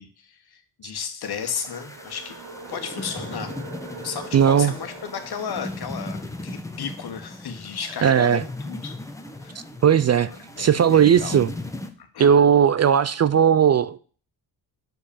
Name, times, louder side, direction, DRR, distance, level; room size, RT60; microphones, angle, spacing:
voice 1, 0.0-2.4 2.7-3.6 3.9-9.0 9.4-9.6 10.2-11.4 12.0-12.4, left 7 dB, 55° left, 1.6 m, -34 dB
sound 1, 1.2-11.9, left 2 dB, 5° left, 1.1 m, -37 dB
sound 2, 1.4-6.5 8.6-12.0, right 4 dB, 75° right, 1.8 m, -44 dB
voice 2, 4.3-4.7 8.0-8.4 9.8-10.3 10.6-11.5 12.2-14.0, right 8 dB, 40° right, 0.4 m, -17 dB
6.5 x 5.1 x 7.0 m
cardioid pair, 85°, 44 cm